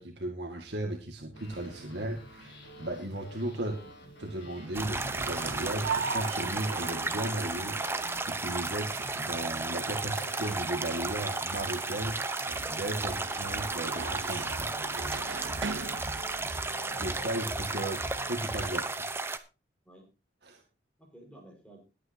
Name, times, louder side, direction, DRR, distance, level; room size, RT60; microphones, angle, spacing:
voice 1, 0.0-3.8 4.2-14.7 17.0-19.1 20.4-20.6, right 1 dB, 60° right, 2 dB, 2.0 m, -36 dB
sound 1, 1.3-18.8, equal, 80° left, 4.5 m, -46 dB
sound 2, 1.4-18.5, right 4 dB, 80° right, 0.9 m, -42 dB
sound 3, 4.7-19.4, right 3 dB, 15° right, 0.8 m, -34 dB
voice 2, 16.9-17.6 19.8-20.1 21.0-21.8, right 1 dB, 5° left, 1 dB, 5.3 m, -53 dB
21.0 x 8.8 x 2.8 m, 0.30 s
head